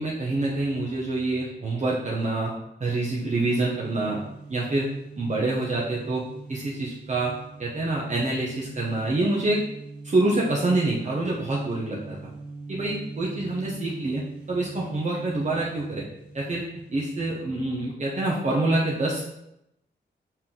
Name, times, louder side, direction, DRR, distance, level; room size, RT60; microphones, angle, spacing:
voice 1, 0.0-2.5 2.8-4.2 4.5-4.9 5.2-6.2 6.5-7.3 7.6-9.6 10.0-12.2 12.7-14.2 14.5-16.1 16.3-16.6 16.9-19.2, right 2 dB, 40° right, -4 dB, 1.0 m, -26 dB
sound 1, 2.9-17.5, right 3 dB, 5° right, 2.1 m, -42 dB
5.8 x 4.6 x 3.8 m, 0.83 s
wide cardioid pair, 150°, 19 cm